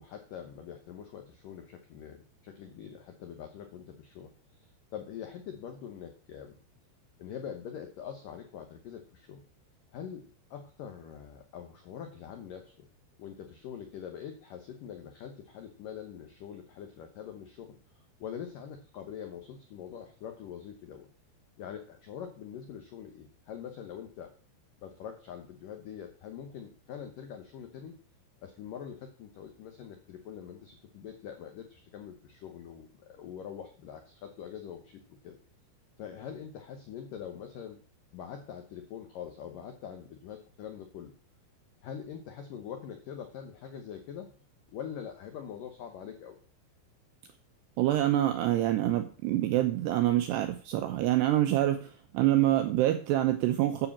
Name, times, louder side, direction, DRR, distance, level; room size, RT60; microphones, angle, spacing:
voice 1, 0.0-6.6 7.2-9.4 9.9-12.9 13.2-21.1 21.6-24.3 24.8-28.0 28.4-35.4 36.0-37.8 38.1-41.1 41.8-44.3 44.7-46.4 53.8-53.9, left 8 dB, 85° left, 5 dB, 1.9 m, -44 dB
voice 2, 47.8-53.9, right 14 dB, 80° right, 7 dB, 2.4 m, -26 dB
10.0 x 6.9 x 7.3 m, 0.41 s
omnidirectional pair, 5.8 m